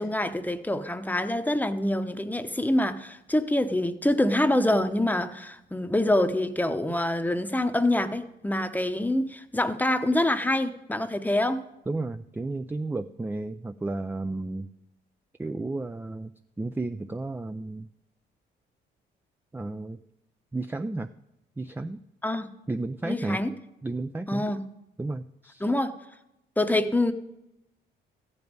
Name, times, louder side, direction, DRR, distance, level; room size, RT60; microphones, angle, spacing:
voice 1, 0.0-11.6 22.2-22.5 23.0-23.5 24.3-24.6 25.6-25.9 26.6-27.1, left 1 dB, 10° left, 8 dB, 0.9 m, -26 dB
voice 2, 11.9-14.7 15.4-16.3 16.6-17.9 19.5-20.0 20.5-21.1 21.6-22.0 22.7-23.4 23.8-24.5 25.0-25.6, right 2 dB, 10° right, 9 dB, 0.4 m, -32 dB
14.0 x 5.4 x 9.4 m, 0.90 s
cardioid pair, 90°, 20 cm